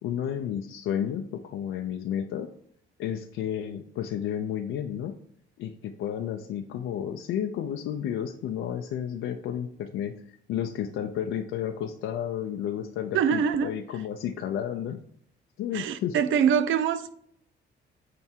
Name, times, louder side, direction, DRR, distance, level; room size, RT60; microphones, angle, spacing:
voice 1, 0.0-2.5 3.0-5.1 5.6-10.2 10.5-15.0 15.6-16.2, left 9 dB, 85° left, 0.6 m, -32 dB
voice 2, 13.1-13.7 15.7-17.1, right 8 dB, 80° right, 0.7 m, -24 dB
8.9 x 3.5 x 4.5 m
cardioid pair, 90°, 20 cm